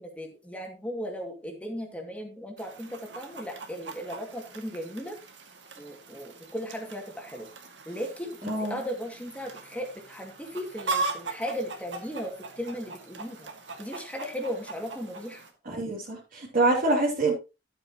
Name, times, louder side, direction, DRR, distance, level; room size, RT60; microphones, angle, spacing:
voice 1, 0.0-5.2 5.8-7.5 7.9-13.5 13.8-15.4, equal, 5° left, 1 dB, 2.3 m, -36 dB
Chicken rooster, 2.6-15.5, right 3 dB, 75° right, 2.2 m, -39 dB
voice 2, 8.5-8.8 15.6-17.3, right 2 dB, 50° right, -4 dB, 2.9 m, -25 dB
12.0 x 9.0 x 3.0 m, 0.29 s
head